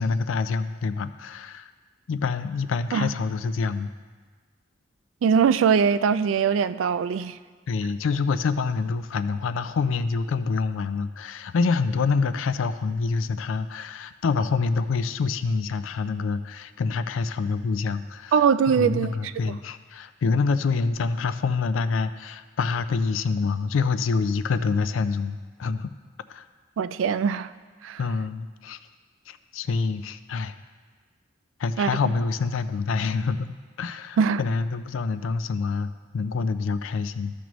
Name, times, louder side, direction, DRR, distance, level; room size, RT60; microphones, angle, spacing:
voice 1, 0.0-1.7 2.1-3.9 7.7-18.3 18.7-25.9 26.3-26.4 28.0-28.8 29.3-30.6 31.6-33.5 33.8-37.3, left 4 dB, 80° left, 12 dB, 0.4 m, -26 dB
voice 2, 5.2-7.4 18.3-19.5 26.8-27.5 27.8-28.0 31.8-31.9 34.2-34.4, right 6 dB, 75° right, 13 dB, 0.3 m, -22 dB
13.5 x 6.2 x 3.0 m, 1.5 s
head